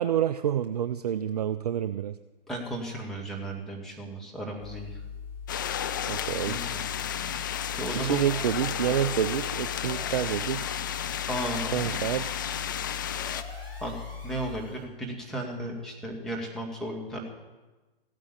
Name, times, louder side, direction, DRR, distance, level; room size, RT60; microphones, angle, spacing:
voice 1, 0.0-2.1 6.1-6.6 8.0-10.7 11.7-12.3, right 10 dB, 40° right, 12 dB, 0.4 m, -28 dB
voice 2, 2.5-5.0 6.5-6.8 7.7-8.3 11.3-12.0 13.8-13.9 14.2-17.2, right 1 dB, ahead, -2 dB, 2.1 m, -35 dB
sound 1, 4.6-14.6, left 6 dB, 45° left, 3.7 m, -40 dB
sound 2, 5.5-13.4, left 9 dB, 20° left, 0.3 m, -33 dB
sound 3, 8.2-14.8, left 1 dB, 75° left, 6.5 m, -47 dB
15.5 x 9.2 x 7.1 m, 1.2 s
figure-of-eight pair, 125°, 30 cm